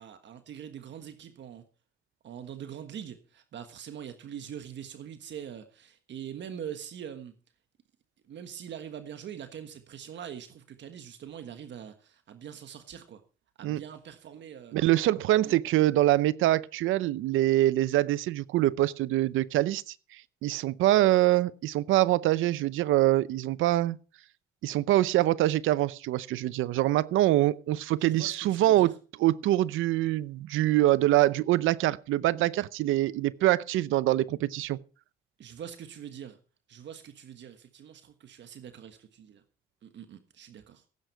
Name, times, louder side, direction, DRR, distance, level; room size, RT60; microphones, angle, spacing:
voice 1, 0.0-1.6 2.2-7.3 8.3-13.2 13.6-14.8 15.4-15.6 28.0-28.9 35.4-36.4 36.7-39.4 39.8-40.8, right 9 dB, 65° right, 1.5 m, -43 dB
voice 2, 14.7-24.0 24.6-28.9 29.2-34.8, right 15 dB, 85° right, 0.7 m, -24 dB
16.5 x 9.3 x 4.6 m
cardioid pair, 90°, 20 cm